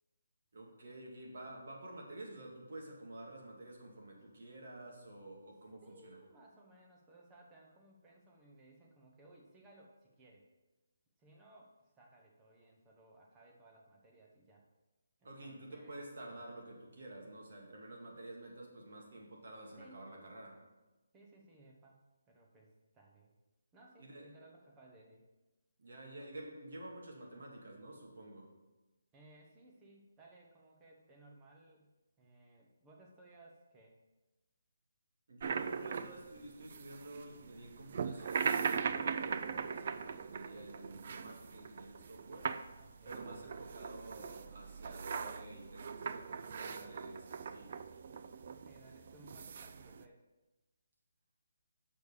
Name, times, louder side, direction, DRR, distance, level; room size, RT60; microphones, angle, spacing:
voice 1, 0.5-6.2 15.2-20.6 24.0-24.3 25.8-28.5 35.3-42.5 43.0-47.8, right 1 dB, 50° right, -1 dB, 2.1 m, -50 dB
voice 2, 5.8-10.5 11.2-14.7 15.2-16.5 19.8-20.0 21.1-23.3 23.7-25.2 29.1-34.0 42.4-43.5 47.9-50.2, right 2 dB, 10° right, -1 dB, 0.9 m, -61 dB
sound 1, 35.4-50.0, right 6 dB, 35° right, 0.3 m, -40 dB
6.5 x 5.2 x 6.8 m, 1.1 s
hypercardioid pair, 175°, 0 cm